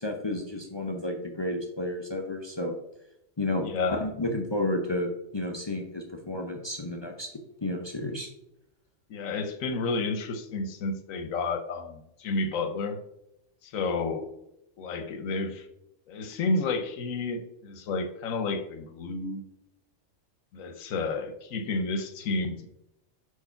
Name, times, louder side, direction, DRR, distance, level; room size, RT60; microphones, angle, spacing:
voice 1, 0.0-2.7 3.4-7.3 7.6-8.3, left 1 dB, 30° left, 2 dB, 0.5 m, -31 dB
voice 2, 3.6-4.0 9.1-13.0 13.6-14.3 14.8-15.7 16.1-19.4 20.5-22.7, left 3 dB, 80° left, 6 dB, 1.1 m, -31 dB
4.7 x 4.7 x 5.6 m, 0.83 s
omnidirectional pair, 1.4 m